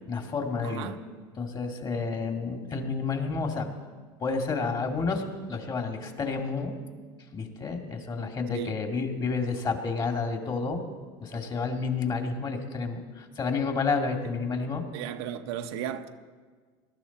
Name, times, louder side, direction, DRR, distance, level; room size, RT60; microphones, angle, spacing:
voice 1, 0.1-0.9 1.4-3.7 4.2-6.7 7.3-10.8 11.2-14.8, left 4 dB, 35° left, 2.2 m, -30 dB
voice 2, 0.6-1.0 8.5-8.8 14.9-16.1, right 9 dB, 80° right, 0.9 m, -35 dB
20.5 x 12.0 x 4.1 m
supercardioid pair, 100°, 13 cm